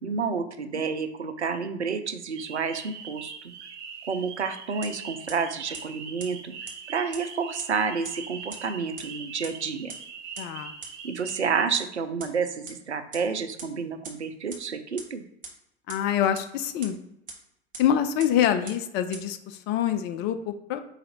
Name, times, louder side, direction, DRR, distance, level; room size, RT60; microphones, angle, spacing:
voice 1, 0.0-3.5 4.1-6.5 6.9-9.9 11.0-15.2, right 5 dB, 85° right, 8 dB, 0.6 m, -30 dB
sound 1, 2.3-11.6, right 6 dB, 50° right, 1.0 m, -42 dB
sound 2, 4.8-4.9 5.3-5.4 5.7-5.8 6.2-6.3 6.7-6.8 7.1-7.2 7.6-7.7 8.0-8.1 8.5-8.6 9.0-9.1 9.4-9.5 9.9-10.0 10.3-10.4 10.8-10.9 11.3-11.4 11.7-11.8 12.2-12.3 12.7-12.8 13.1-13.2 13.6-13.7 14.0-14.1 14.5-14.6 15.0-15.1 15.4-15.5 15.9-16.0 16.4-16.5 16.8-16.9 17.3-17.4 17.7-17.8 18.2-18.3 18.7-18.8 19.1-19.2, right 5 dB, 25° right, 1.1 m, -38 dB
voice 2, 10.4-10.7 15.9-17.0 17.8-20.8, left 9 dB, 35° left, 8 dB, 0.4 m, -26 dB
4.8 x 2.6 x 4.2 m, 0.80 s
figure-of-eight pair, 80°, 33 cm